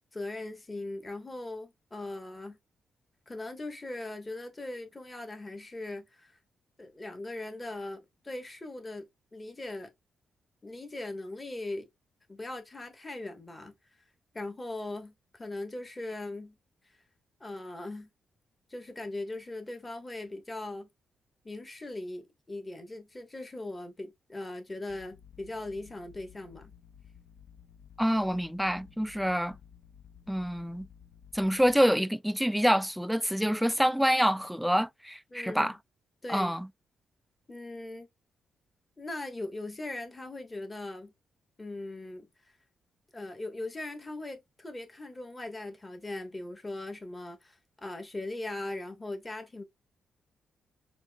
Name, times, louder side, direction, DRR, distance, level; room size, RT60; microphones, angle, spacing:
voice 1, 0.1-2.6 3.3-6.3 6.8-9.9 10.6-11.9 12.3-13.7 14.3-16.6 16.8-17.0 17.4-18.1 18.7-20.9 21.4-26.7 35.3-35.7 36.2-36.5 37.5-38.1 39.0-41.1 41.6-42.6 43.1-49.6, left 2 dB, 25° left, 1.2 m, -40 dB
sound 1, 24.9-31.8, left 8 dB, 60° left, 0.7 m, -55 dB
voice 2, 28.0-29.6 30.3-30.9 31.3-35.7 36.3-36.7, equal, ahead, 0.3 m, -26 dB
6.7 x 2.6 x 2.2 m
cardioid pair, 80°, 0 cm